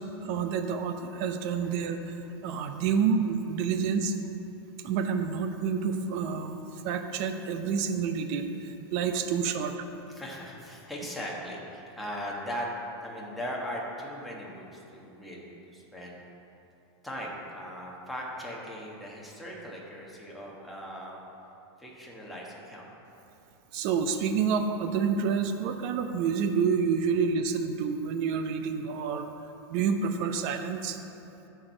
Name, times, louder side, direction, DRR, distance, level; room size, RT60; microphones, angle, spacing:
voice 1, 0.2-2.2 2.4-4.1 4.8-9.9 23.7-29.3 29.7-31.0, right 6 dB, 45° right, 7 dB, 0.7 m, -28 dB
voice 2, 10.1-12.7 13.0-16.2 17.0-21.2 21.8-22.9, equal, ahead, -5 dB, 1.3 m, -39 dB
13.5 x 4.7 x 4.4 m, 2.9 s
supercardioid pair, 140°, 14 cm